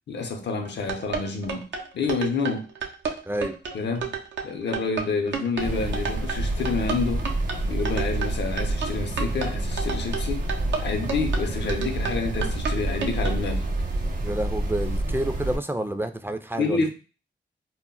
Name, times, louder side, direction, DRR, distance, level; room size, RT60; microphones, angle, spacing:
voice 1, 0.1-1.7 1.9-2.7 3.7-4.1 4.4-7.3 7.6-10.4 10.8-13.7 16.5-16.9, left 4 dB, 75° left, 0.5 m, -28 dB
sound 1, 0.6-13.4, right 6 dB, 85° right, 0.5 m, -31 dB
sound 2, 5.6-15.6, right 2 dB, 50° right, 0.7 m, -28 dB
voice 2, 14.2-16.9, right 1 dB, 10° right, 0.3 m, -29 dB
2.1 x 2.0 x 3.7 m
cardioid pair, 55°, 18 cm